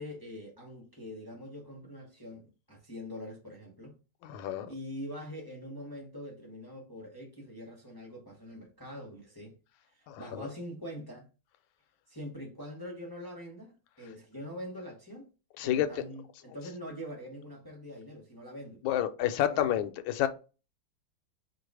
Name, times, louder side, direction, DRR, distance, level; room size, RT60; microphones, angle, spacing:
voice 1, 0.0-4.0 4.7-9.6 9.9-11.3 12.1-15.3 15.6-18.8 19.4-19.9, equal, 25° left, 0.5 m, -44 dB
voice 2, 4.2-4.7 10.1-10.5 15.6-15.9 18.8-20.3, left 11 dB, 75° left, 1.3 m, -29 dB
4.7 x 2.4 x 4.7 m
omnidirectional pair, 2.3 m